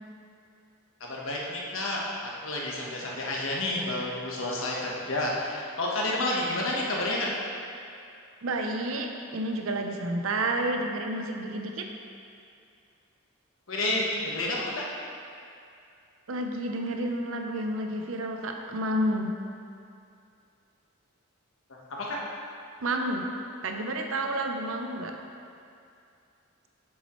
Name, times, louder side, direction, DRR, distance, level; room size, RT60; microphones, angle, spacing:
voice 1, 1.0-7.3 13.7-14.9 22.0-22.2, left 1 dB, 70° left, -3 dB, 1.2 m, -30 dB
voice 2, 8.4-11.9 16.3-19.3 22.8-23.3 23.6-25.2, right 1 dB, 70° right, 3 dB, 0.7 m, -30 dB
7.3 x 7.1 x 3.1 m, 2.5 s
head